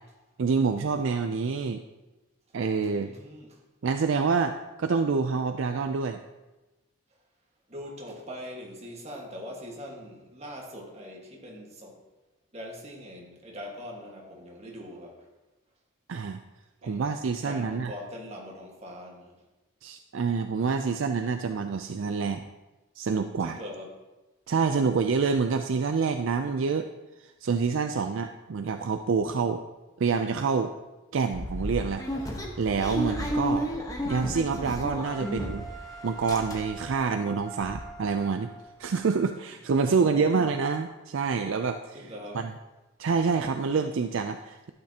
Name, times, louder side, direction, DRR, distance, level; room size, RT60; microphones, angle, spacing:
voice 1, 0.4-1.8 2.5-3.1 3.8-6.2 16.1-16.4 16.8-17.9 19.8-22.4 23.0-23.6 24.5-26.9 27.2-29.6 30.0-30.7 31.1-33.7 34.0-35.7 36.0-38.5 38.8-42.1 42.3-42.5 43.0-44.7, right 5 dB, 60° right, 7 dB, 0.4 m, -27 dB
voice 2, 2.8-3.6 7.7-12.0 12.5-15.2 16.8-19.4 23.4-23.9 40.0-40.2 41.9-42.5, equal, 30° right, -1 dB, 1.6 m, -42 dB
sound 1, 31.3-35.8 36.1-36.9 37.3-37.4 37.6-37.8, equal, 15° left, 1.0 m, -32 dB
sound 2, 35.0-39.1, right 4 dB, ahead, 0.7 m, -45 dB
12.0 x 8.9 x 2.8 m, 1.1 s
head